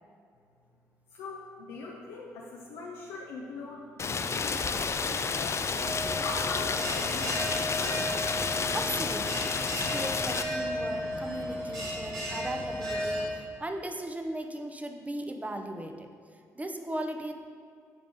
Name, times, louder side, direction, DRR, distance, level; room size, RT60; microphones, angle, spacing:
voice 1, 1.1-5.6 6.1-8.0, left 3 dB, 70° left, -3 dB, 0.7 m, -41 dB
Rain, 4.0-10.4, left 5 dB, 35° left, 0.5 m, -30 dB
Bell, 5.8-13.3, equal, 75° right, 1.8 m, -34 dB
voice 2, 8.7-16.1 16.5-17.3, right 1 dB, 15° right, 5 dB, 0.9 m, -37 dB
10.5 x 5.1 x 3.6 m, 2.3 s
figure-of-eight pair, 40°, 8 cm